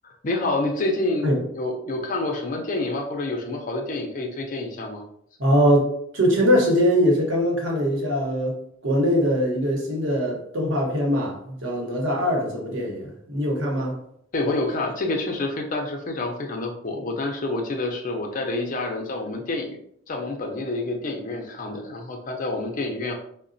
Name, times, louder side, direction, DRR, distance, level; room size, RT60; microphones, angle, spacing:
voice 1, 0.0-1.3 1.5-5.0 14.3-19.8 20.1-23.2, left 2 dB, 45° left, 2 dB, 0.5 m, -28 dB
voice 2, 5.4-8.6 8.8-14.0, equal, 75° right, -1 dB, 0.9 m, -22 dB
3.9 x 2.1 x 2.5 m, 0.68 s
head